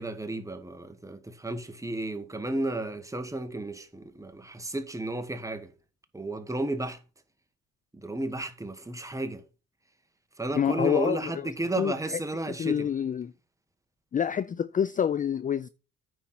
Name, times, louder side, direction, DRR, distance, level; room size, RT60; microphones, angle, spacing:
voice 1, 0.0-5.7 6.1-7.0 7.9-9.4 10.4-12.9, right 2 dB, 10° right, 1.4 m, -33 dB
voice 2, 10.6-11.3 11.8-12.2 12.6-13.3 14.1-15.7, left 8 dB, 30° left, 0.3 m, -27 dB
9.4 x 4.2 x 6.0 m
cardioid pair, 90°, 30 cm